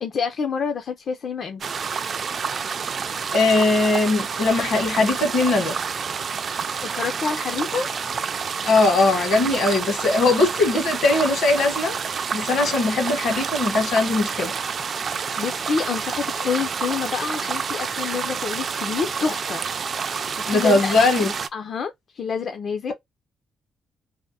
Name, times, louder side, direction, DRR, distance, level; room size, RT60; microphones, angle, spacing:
voice 1, 0.0-1.6 6.8-7.9 15.0-19.6 20.4-22.9, left 6 dB, 45° left, 0.4 m, -28 dB
sound 1, 1.6-21.5, right 6 dB, 40° right, 0.3 m, -28 dB
voice 2, 3.3-5.8 8.6-11.9 12.3-14.5 20.5-21.3, left 3 dB, 65° left, 1.1 m, -20 dB
3.4 x 2.0 x 2.6 m
cardioid pair, 165°, 0 cm